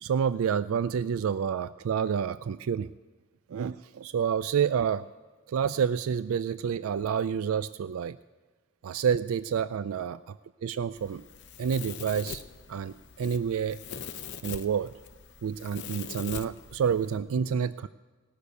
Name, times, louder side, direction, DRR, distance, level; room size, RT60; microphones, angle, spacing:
voice 1, 0.0-2.9 3.5-5.0 5.5-8.2 8.8-10.3 10.6-11.2 11.6-12.4 12.7-13.8 14.4-14.9 15.4-17.9, right 7 dB, 70° right, 15 dB, 0.3 m, -28 dB
Domestic sounds home sounds, 11.0-17.2, left 7 dB, 55° left, 0.7 m, -43 dB
18.0 x 6.6 x 8.1 m, 1.4 s
head